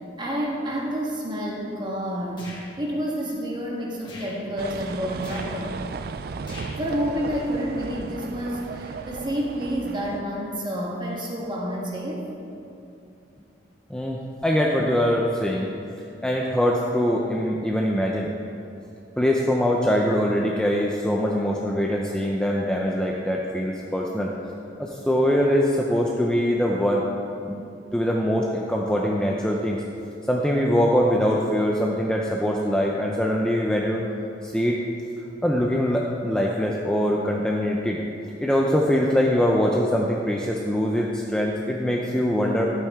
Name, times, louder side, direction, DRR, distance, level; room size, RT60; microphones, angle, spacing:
voice 1, 0.2-2.4 2.8-5.7 6.8-12.3, equal, 25° right, -2 dB, 1.5 m, -29 dB
sound 1, 2.4-2.7 4.0-4.4 5.2-5.5 6.4-6.8, left 2 dB, 25° left, 2.0 m, -41 dB
sound 2, 4.6-10.2, right 4 dB, 55° right, 0.4 m, -35 dB
voice 2, 13.9-15.7 16.2-18.3 19.2-24.3 24.8-27.0 27.5-27.6 27.9-29.8 30.3-34.0 34.4-34.8 35.4-38.0 38.4-42.7, equal, 5° left, -2 dB, 0.5 m, -23 dB
11.5 x 8.6 x 3.6 m, 2.7 s
head